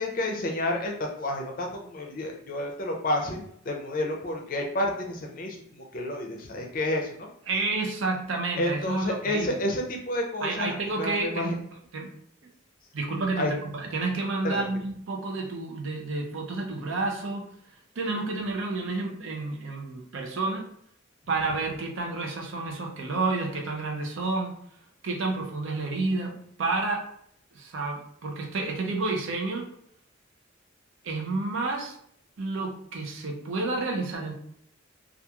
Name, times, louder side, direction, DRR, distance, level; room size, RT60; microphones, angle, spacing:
voice 1, 0.0-7.3 8.6-11.6 13.4-13.5 14.4-14.6, left 1 dB, 45° left, 2 dB, 0.5 m, -30 dB
voice 2, 7.5-9.6 10.4-11.5 11.9-12.1 12.9-17.5 18.0-20.7 21.3-24.6 25.0-27.0 27.5-29.7 31.0-32.0 32.4-34.3, right 3 dB, 70° right, 1 dB, 0.5 m, -30 dB
2.9 x 2.3 x 2.3 m, 0.68 s
head